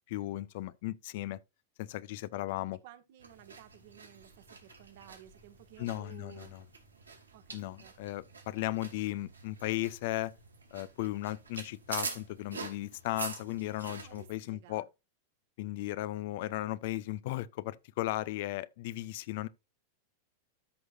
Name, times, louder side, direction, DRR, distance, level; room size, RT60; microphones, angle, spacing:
voice 1, 0.0-1.4 1.8-2.8 5.8-6.6 7.5-10.3 10.7-14.9 15.6-19.5, left 16 dB, 50° left, 0.6 m, -36 dB
voice 2, 2.3-6.5 7.3-7.9 13.9-14.9, right 12 dB, 50° right, 1.5 m, -55 dB
sound 1, 3.2-14.3, right 4 dB, 80° right, 3.1 m, -46 dB
13.0 x 6.3 x 2.6 m
figure-of-eight pair, 90°, 0 cm